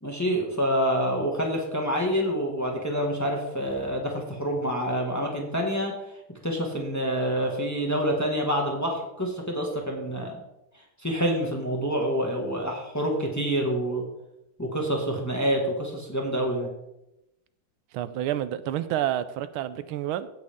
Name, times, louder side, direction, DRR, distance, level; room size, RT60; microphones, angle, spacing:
voice 1, 0.0-5.9 6.4-10.3 11.0-14.0 14.6-16.7, equal, 10° left, 1.6 m, -27 dB
voice 2, 17.9-20.3, right 12 dB, 90° right, 1.5 m, -29 dB
16.5 x 6.3 x 3.6 m
omnidirectional pair, 2.2 m